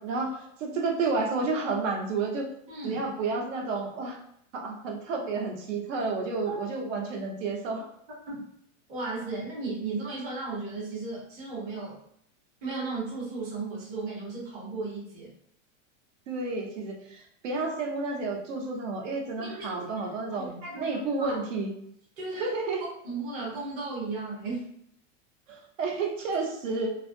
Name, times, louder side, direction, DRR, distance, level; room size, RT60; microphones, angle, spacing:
voice 1, 0.0-2.5 2.8-4.2 4.5-7.9 16.3-21.7 22.4-22.8 25.5-27.0, right 3 dB, 80° right, 1 dB, 0.8 m, -31 dB
voice 2, 2.7-3.0 6.4-6.6 8.3-8.4 8.9-12.0 12.6-15.3 19.4-21.4 22.2-22.5 22.8-24.7, right 3 dB, 15° right, -7 dB, 0.4 m, -35 dB
2.6 x 2.4 x 2.5 m, 0.71 s
supercardioid pair, 175°, 38 cm